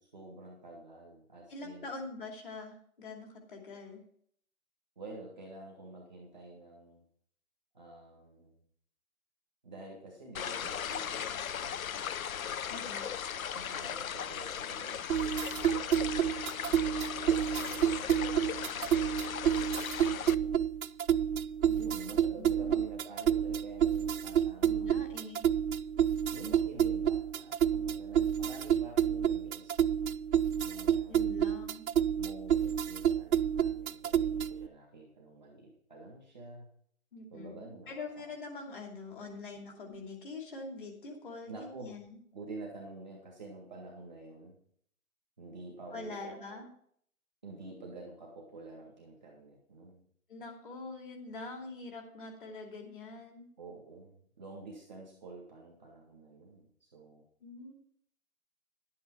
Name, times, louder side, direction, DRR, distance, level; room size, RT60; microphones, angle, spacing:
voice 1, 0.0-1.9 5.0-7.0 7.7-8.6 9.6-11.8 12.7-13.0 13.5-15.1 16.2-17.0 17.3-19.1 20.2-20.7 21.7-25.1 26.3-29.9 30.6-31.3 32.1-36.7 37.3-38.3 41.5-41.9 42.3-44.6 45.4-46.6 47.4-50.0 53.6-57.2, right 3 dB, 5° left, -13 dB, 0.7 m, -49 dB
voice 2, 1.5-4.0 12.7-13.1 22.4-22.8 24.6-25.5 31.1-31.9 37.1-42.2 45.9-46.7 50.3-53.5 57.4-57.7, left 3 dB, 40° left, 2 dB, 2.7 m, -44 dB
sound 1, 10.4-20.4, left 8 dB, 75° left, 0.6 m, -37 dB
sound 2, 15.1-34.7, right 9 dB, 80° right, 0.6 m, -29 dB
11.5 x 8.6 x 4.6 m, 0.63 s
hypercardioid pair, 170°, 42 cm